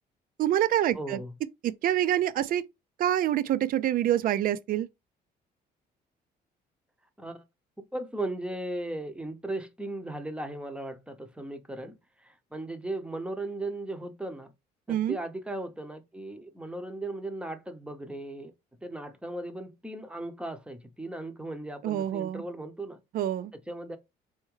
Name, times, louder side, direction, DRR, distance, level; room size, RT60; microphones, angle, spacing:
voice 1, 0.4-1.2 1.8-2.6 3.0-4.9 14.9-15.2 21.8-22.4 23.1-23.5, right 12 dB, 55° right, 0.5 m, -26 dB
voice 2, 0.9-1.3 7.2-7.4 7.9-14.5 14.9-18.5 18.8-23.0 23.7-24.0, right 2 dB, 5° right, 0.7 m, -37 dB
4.4 x 3.5 x 3.1 m
cardioid pair, 110°, 17 cm